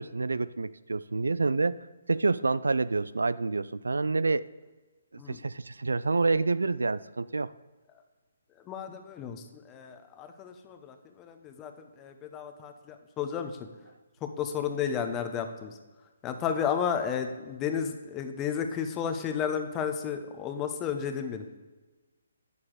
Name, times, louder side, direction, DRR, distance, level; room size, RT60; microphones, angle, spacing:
voice 1, 0.0-1.7 2.1-4.4 5.3-7.5, right 3 dB, 85° right, 17 dB, 0.3 m, -27 dB
voice 2, 8.7-11.7 12.0-13.5 14.2-15.7 16.2-21.4, left 7 dB, 20° left, 6 dB, 0.8 m, -32 dB
8.6 x 6.9 x 4.8 m, 1.2 s
figure-of-eight pair, 145°, 0 cm